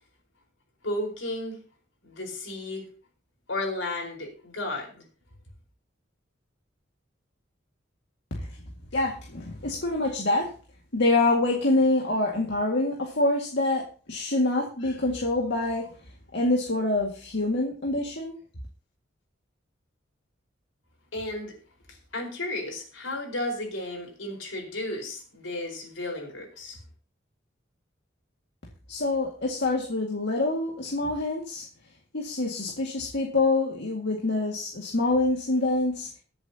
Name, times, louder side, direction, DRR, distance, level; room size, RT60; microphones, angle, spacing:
voice 1, 0.8-1.6 2.0-2.9 3.5-5.0 21.1-21.6 22.1-26.8, left 1 dB, 85° left, 4.9 m, -33 dB
voice 2, 8.9-10.5 10.9-15.9 16.3-18.3 28.9-31.6 32.1-36.1, left 2 dB, 65° left, 2.1 m, -26 dB
22.5 x 8.0 x 2.9 m
head